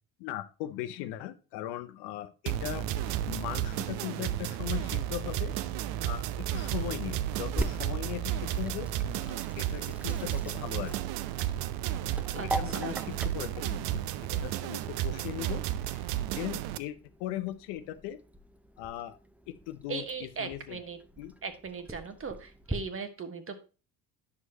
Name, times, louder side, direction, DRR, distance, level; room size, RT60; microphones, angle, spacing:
voice 1, 0.2-5.5 6.0-11.0 12.3-14.0 14.3-16.1 16.3-18.2 18.8-19.2 19.5-20.8 21.2-21.3, left 13 dB, 60° left, 12 dB, 0.7 m, -39 dB
sound 1, 2.5-16.8, right 12 dB, 60° right, 0.6 m, -33 dB
Sink (filling or washing), 7.3-22.7, right 2 dB, 5° right, 0.5 m, -42 dB
voice 2, 12.3-13.1 19.9-21.0 21.4-23.6, right 5 dB, 30° right, 9 dB, 1.2 m, -39 dB
9.7 x 6.2 x 2.8 m, 0.33 s
hypercardioid pair, 60°, 45 cm